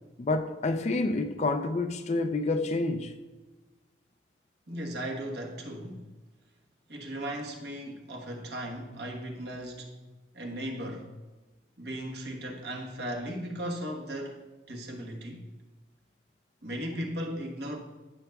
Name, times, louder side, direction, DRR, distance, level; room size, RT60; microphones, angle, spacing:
voice 1, 0.2-3.2, left 2 dB, 35° left, 0.4 m, -28 dB
voice 2, 4.7-6.1 6.9-9.9 10.3-11.1 11.8-14.4 14.7-15.4 16.6-17.8, equal, 65° right, 1.2 m, -37 dB
15.0 x 6.7 x 2.3 m
head